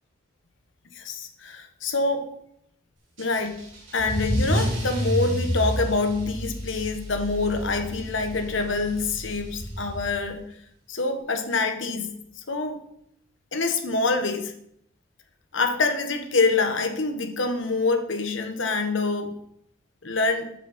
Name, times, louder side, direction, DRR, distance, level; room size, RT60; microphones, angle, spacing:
voice 1, 0.9-2.3 3.2-3.6 3.9-10.4 10.9-12.8 13.5-14.5 15.5-19.4 20.0-20.5, left 3 dB, 75° left, 6 dB, 1.2 m, -26 dB
Car / Engine starting / Accelerating revving vroom, 3.2-10.3, equal, 85° right, 3.5 m, -30 dB
7.8 x 7.6 x 4.2 m, 0.72 s
head